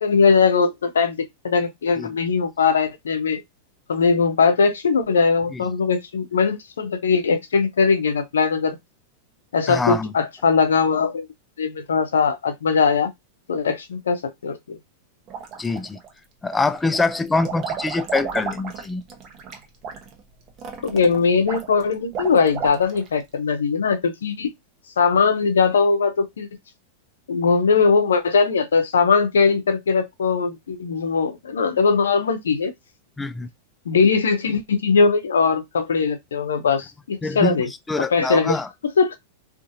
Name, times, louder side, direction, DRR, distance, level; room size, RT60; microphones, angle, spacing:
voice 1, 0.0-1.2 1.4-3.4 3.9-8.8 9.5-11.3 11.6-13.1 13.5-14.8 20.8-24.5 25.0-26.5 27.3-32.7 33.9-37.7 38.1-38.6 39.0-39.2, left 5 dB, 85° left, 0.5 m, -20 dB
voice 2, 9.7-10.1 15.6-16.0 16.4-19.0 33.2-33.5 37.2-37.6 37.9-38.7, left 3 dB, 10° left, 0.3 m, -24 dB
sound 1, 15.3-16.1 16.5-23.2, right 6 dB, 40° right, 0.8 m, -33 dB
2.6 x 2.5 x 2.5 m
hypercardioid pair, 110°, 0 cm